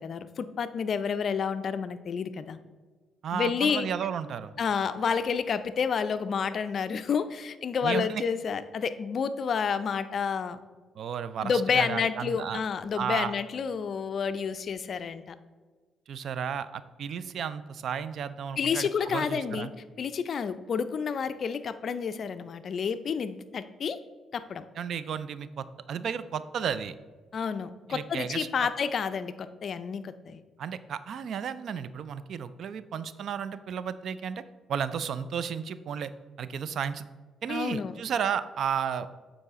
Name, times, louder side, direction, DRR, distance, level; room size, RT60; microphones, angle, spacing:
voice 1, 0.0-2.6 3.3-3.9 4.6-10.6 11.4-15.4 18.6-19.7 20.0-24.0 24.3-24.7 27.3-30.4 37.5-37.9, left 6 dB, 55° left, 12 dB, 0.4 m, -30 dB
voice 2, 3.2-4.5 7.8-8.2 11.0-12.6 12.9-13.3 16.1-19.7 24.8-26.9 27.9-28.7 30.6-34.4 34.7-36.1 36.4-37.1 37.4-39.1, right 7 dB, 65° right, 14 dB, 0.3 m, -33 dB
8.5 x 4.1 x 3.6 m, 1.4 s
cardioid pair, 90°, 0 cm